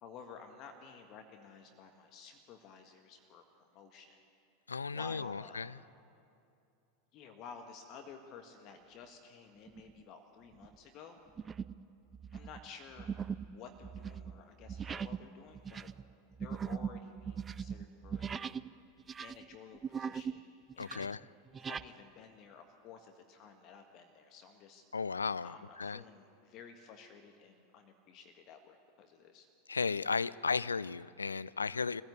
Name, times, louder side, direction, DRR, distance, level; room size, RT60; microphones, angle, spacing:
voice 1, 0.0-4.2 4.9-5.6 7.1-11.2 12.3-13.1 13.4-15.9 16.4-18.5 19.2-20.5 20.7-21.1 21.6-24.8 25.4-29.5, left 6 dB, 40° left, 5 dB, 1.7 m, -53 dB
voice 2, 4.7-5.8 20.8-21.2 24.9-26.0 29.7-32.0, left 5 dB, 80° left, 18 dB, 0.4 m, -35 dB
sound 1, 9.7-10.0 10.5-10.8 11.4-11.8 12.1-18.7 19.0-20.4 20.7-21.9, right 7 dB, 20° right, 0.5 m, -40 dB
24.0 x 15.0 x 8.4 m, 2.6 s
figure-of-eight pair, 85°, 0 cm